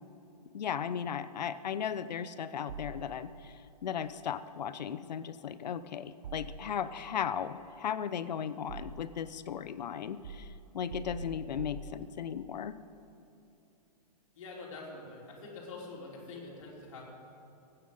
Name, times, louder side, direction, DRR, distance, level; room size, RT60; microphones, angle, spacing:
voice 1, 0.5-10.5 10.7-12.8, left 8 dB, 85° left, 14 dB, 0.7 m, -36 dB
sound 1, 2.7-3.6 6.2-7.1 8.0-9.3 10.2-12.5, right 4 dB, 85° right, 0.9 m, -46 dB
voice 2, 14.3-17.1, left 3 dB, 50° left, -3 dB, 3.4 m, -45 dB
17.5 x 9.4 x 5.5 m, 2.8 s
hypercardioid pair, 170°, 21 cm